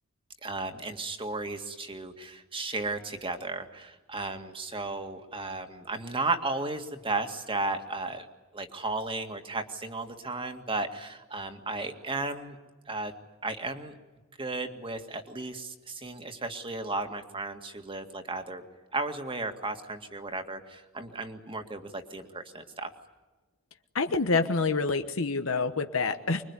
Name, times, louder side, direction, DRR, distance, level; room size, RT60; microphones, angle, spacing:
voice 1, 0.4-8.3 8.5-12.6 12.9-13.1 13.4-14.0 14.4-18.6 18.9-22.9, right 3 dB, 25° right, 6 dB, 2.2 m, -34 dB
voice 2, 23.9-26.4, left 4 dB, 90° left, 7 dB, 1.2 m, -27 dB
25.5 x 22.5 x 9.8 m, 1.2 s
head